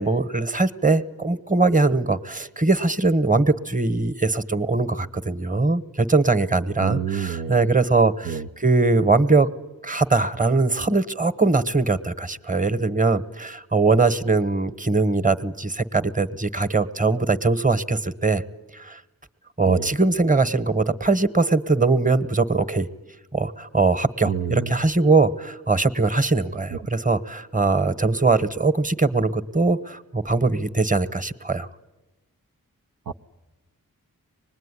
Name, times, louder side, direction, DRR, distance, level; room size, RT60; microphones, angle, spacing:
voice 1, 0.0-9.5 9.8-18.4 18.7-19.0 19.6-22.9 23.3-31.7, right 3 dB, 20° right, 12 dB, 1.3 m, -21 dB
voice 2, 6.8-7.6 8.2-8.5 19.7-19.9 24.3-24.7 26.7-26.8 33.1-33.2, right 8 dB, 75° right, 5 dB, 0.8 m, -28 dB
25.0 x 20.5 x 9.9 m, 1.1 s
cardioid pair, 55°, 35 cm